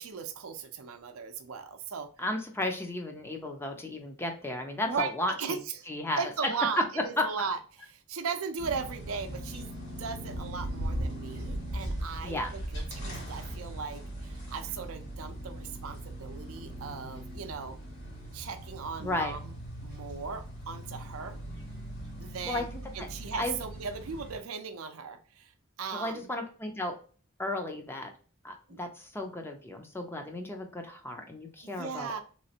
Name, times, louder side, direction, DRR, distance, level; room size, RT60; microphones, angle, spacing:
voice 1, 0.0-2.1 4.9-5.1 5.4-5.9 6.2-17.8 18.3-21.4 22.2-22.7 22.9-25.5 25.8-26.3 28.7-28.9 31.6-32.2, right 5 dB, 75° right, 8 dB, 0.5 m, -37 dB
voice 2, 2.2-5.6 5.9-6.2 7.0-7.2 12.2-12.6 19.0-19.4 22.5-23.1 23.4-23.5 25.9-26.9 27.4-28.1 28.4-32.2, left 1 dB, 10° left, 4 dB, 0.5 m, -34 dB
sound 1, 8.6-24.4, right 1 dB, 55° left, 1.9 m, -39 dB
3.3 x 3.1 x 2.7 m, 0.39 s
head